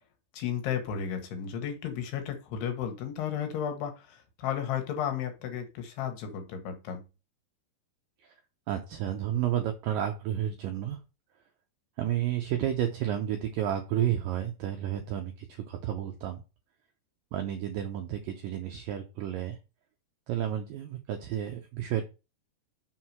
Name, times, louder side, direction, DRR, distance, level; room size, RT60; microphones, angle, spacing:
voice 1, 0.3-7.0, left 8 dB, 75° left, 6 dB, 3.3 m, -33 dB
voice 2, 8.7-11.0 12.0-16.4 17.3-19.6 20.3-22.0, right 10 dB, 85° right, 4 dB, 2.0 m, -31 dB
6.5 x 4.7 x 5.7 m, 0.29 s
omnidirectional pair, 5.0 m